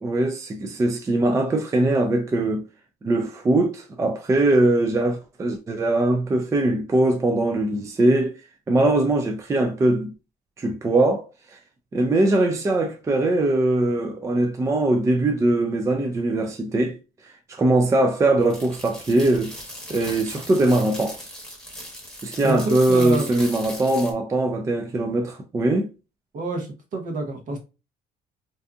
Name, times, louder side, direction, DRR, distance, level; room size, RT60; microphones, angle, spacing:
voice 1, 0.0-2.6 3.0-8.3 8.7-10.1 10.6-11.6 11.9-17.0 17.2-19.5 19.9-21.2 22.2-25.9, right 2 dB, 20° right, 0.3 m, -21 dB
sound 1, 18.4-24.1, equal, 5° left, 1.0 m, -38 dB
voice 2, 22.4-23.3 26.3-27.6, right 2 dB, 50° right, 0.8 m, -28 dB
2.6 x 2.4 x 2.3 m
cardioid pair, 110°, 17 cm